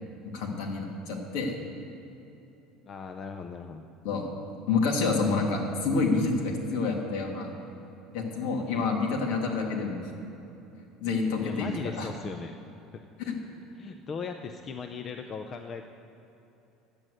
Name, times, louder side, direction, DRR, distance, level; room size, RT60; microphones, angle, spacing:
voice 1, 0.3-1.6 4.0-4.3 4.7-7.5 8.1-10.0 11.0-11.7 12.0-12.1 13.2-13.4, left 4 dB, 70° left, 1 dB, 2.0 m, -28 dB
voice 2, 2.9-3.9 8.6-8.9 11.4-12.5 12.9-13.0 13.7-15.9, left 5 dB, 30° left, 6 dB, 0.5 m, -38 dB
10.5 x 8.1 x 7.7 m, 2.9 s
cardioid pair, 155°, 0 cm